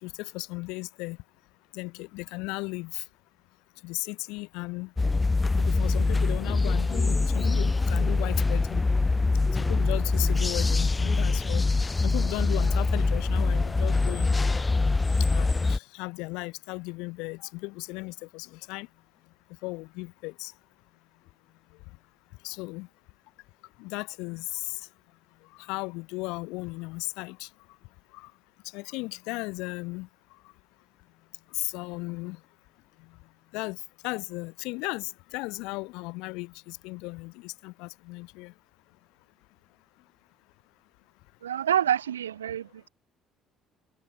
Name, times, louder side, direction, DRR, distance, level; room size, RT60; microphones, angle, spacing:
voice 1, 0.0-1.2 1.7-3.1 3.8-4.9 5.6-8.8 9.5-11.6 12.0-14.4 15.2-18.9 19.6-20.5 22.4-22.9 23.8-24.9 25.4-27.5 28.1-28.3 28.6-30.4 31.5-32.4 33.0-33.2 33.5-38.5, left 25 dB, 60° left, 1.4 m, -36 dB
sound 1, 5.0-15.8, left 3 dB, 20° left, 0.9 m, -24 dB
voice 2, 41.4-42.9, right 10 dB, 75° right, 0.8 m, -27 dB
figure-of-eight pair, 50°, 0 cm